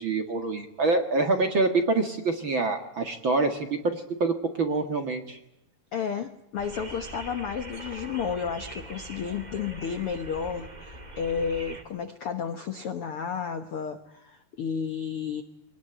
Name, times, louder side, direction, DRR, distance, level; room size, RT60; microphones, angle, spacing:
voice 1, 0.0-5.4, right 3 dB, 45° right, 5 dB, 1.8 m, -26 dB
voice 2, 5.9-15.4, left 6 dB, 70° left, 9 dB, 1.3 m, -32 dB
sound 1, 6.6-11.8, right 1 dB, 20° right, 1.3 m, -42 dB
24.0 x 19.0 x 9.0 m, 0.87 s
omnidirectional pair, 4.4 m